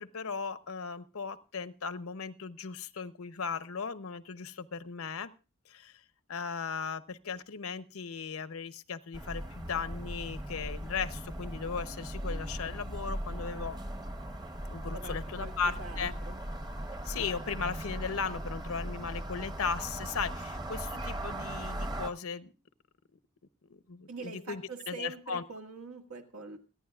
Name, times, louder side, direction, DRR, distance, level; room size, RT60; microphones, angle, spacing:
voice 1, 0.0-5.3 5.7-6.0 6.3-13.8 14.7-16.1 17.0-22.5 23.9-24.6 24.9-25.4, left 5 dB, 75° left, 13 dB, 0.8 m, -37 dB
sound 1, 9.1-22.1, right 1 dB, 20° right, 0.9 m, -38 dB
voice 2, 14.9-16.4 24.1-26.6, right 3 dB, 85° right, 3 dB, 1.9 m, -44 dB
29.0 x 10.0 x 2.4 m, 0.32 s
head